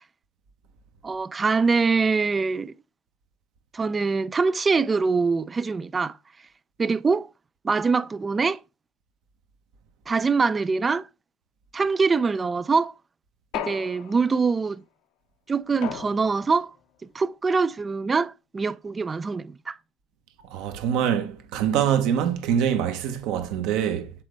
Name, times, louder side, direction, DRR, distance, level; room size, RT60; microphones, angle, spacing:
voice 1, 1.0-2.7 3.7-6.2 6.8-7.3 7.6-8.6 10.1-11.1 11.7-12.9 13.5-14.8 15.5-16.7 17.1-19.8, right 4 dB, 25° right, 0.3 m, -24 dB
sound 1, 13.5-14.5 15.8-16.6, left 10 dB, 65° left, 0.7 m, -36 dB
voice 2, 20.5-24.1, right 9 dB, 65° right, 1.0 m, -24 dB
7.4 x 4.0 x 3.2 m
hypercardioid pair, 80°, 0 cm